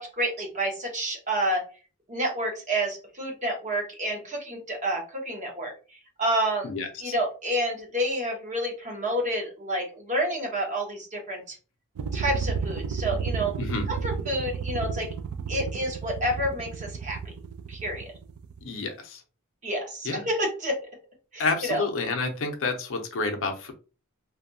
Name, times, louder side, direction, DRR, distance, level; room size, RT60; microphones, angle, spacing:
voice 1, 0.0-1.6 2.1-5.7 6.2-6.7 7.0-11.4 12.1-13.6 13.9-15.1 15.5-17.3 17.7-18.1 19.6-20.8 21.3-21.8, right 1 dB, 35° right, 1 dB, 0.9 m, -29 dB
voice 2, 6.6-7.1 13.6-13.8 18.6-19.2 20.0-20.2 21.4-23.7, left 3 dB, 65° left, 5 dB, 0.6 m, -29 dB
sound 1, 12.0-18.7, right 6 dB, 85° right, 0.4 m, -32 dB
2.5 x 2.2 x 2.6 m, 0.34 s
head